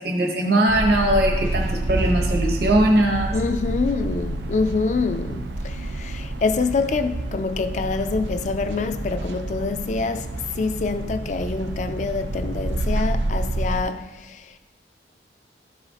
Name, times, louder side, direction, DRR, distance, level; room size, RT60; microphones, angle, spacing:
voice 1, 0.0-3.4, right 1 dB, 65° right, 1.0 m, -20 dB
sound 1, 0.7-13.8, right 2 dB, 80° right, 0.6 m, -28 dB
voice 2, 3.3-14.6, left 4 dB, 40° left, 0.4 m, -26 dB
12.5 x 4.8 x 2.9 m
head